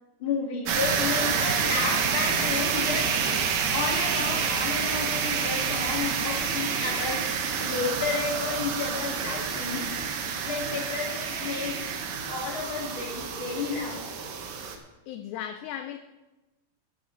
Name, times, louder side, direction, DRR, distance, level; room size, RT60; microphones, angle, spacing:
voice 1, 0.2-3.4 3.7-7.3 7.6-9.9 10.5-11.8 12.3-14.1, left 4 dB, 40° left, -1 dB, 2.6 m, -31 dB
sound 1, 0.7-14.8, right 6 dB, 85° right, 2.8 m, -28 dB
voice 2, 15.1-16.0, left 10 dB, 80° left, 8 dB, 1.8 m, -36 dB
12.5 x 11.0 x 3.9 m, 1.1 s
omnidirectional pair, 3.8 m